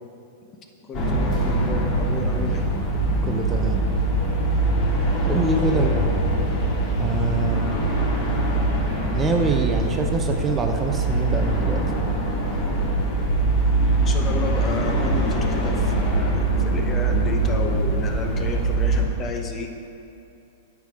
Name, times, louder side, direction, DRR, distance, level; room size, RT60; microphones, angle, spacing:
sound 1, 0.9-19.1, right 2 dB, 45° left, 2.2 m, -22 dB
voice 1, 0.9-2.7 5.7-6.0 14.0-19.7, left 3 dB, 25° left, 3 dB, 1.0 m, -32 dB
voice 2, 3.2-3.8 5.2-5.9 7.0-7.8 9.1-11.8, right 4 dB, 20° right, 4 dB, 0.7 m, -25 dB
9.3 x 6.1 x 5.0 m, 2.7 s
hypercardioid pair, 120°, 0 cm